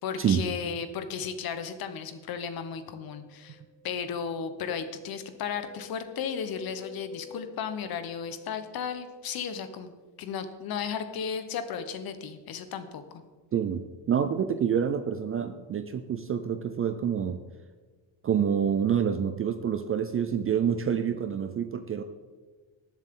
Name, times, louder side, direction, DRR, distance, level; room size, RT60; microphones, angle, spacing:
voice 1, 0.0-3.6 3.8-9.9 10.2-13.2, left 7 dB, 50° left, 10 dB, 1.0 m, -34 dB
sound 1, 2.8-4.0 4.9-8.8, left 6 dB, 25° left, 2.4 m, -50 dB
voice 2, 13.5-17.4 18.2-22.0, right 8 dB, 30° right, 9 dB, 0.4 m, -27 dB
19.5 x 7.5 x 3.7 m, 1.4 s
cardioid pair, 165°, 47 cm